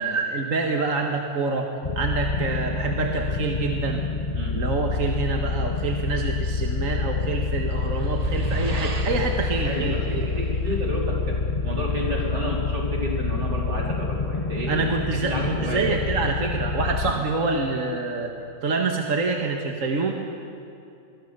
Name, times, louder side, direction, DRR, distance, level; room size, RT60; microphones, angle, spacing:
voice 1, 0.0-1.7 2.0-4.0 4.5-10.3 10.7-10.8 14.7-18.3 18.6-20.1, right 4 dB, 45° right, 2 dB, 1.9 m, -26 dB
sound 1, 1.8-17.1, left 4 dB, 35° left, 0.6 m, -27 dB
sound 2, 7.4-11.1, right 4 dB, 30° right, 0.7 m, -34 dB
voice 2, 9.6-14.9 15.1-15.9 17.0-17.1, equal, 70° right, -2 dB, 4.8 m, -31 dB
25.5 x 22.0 x 6.8 m, 2.6 s
omnidirectional pair, 1.9 m